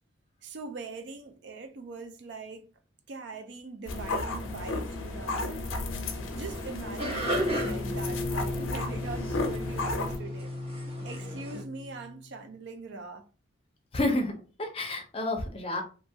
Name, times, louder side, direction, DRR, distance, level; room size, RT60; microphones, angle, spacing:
voice 1, 0.4-2.7 3.1-5.6 6.3-10.5 11.0-13.2, right 4 dB, 60° right, 0.4 m, -42 dB
sound 1, 3.9-10.2, left 2 dB, 90° left, 0.5 m, -34 dB
sound 2, 6.3-11.6, right 1 dB, 30° right, 0.9 m, -36 dB
sound 3, 7.2-12.4, left 2 dB, ahead, 1.0 m, -36 dB
voice 2, 13.9-15.8, left 2 dB, 30° left, 0.5 m, -30 dB
2.8 x 2.3 x 2.7 m
head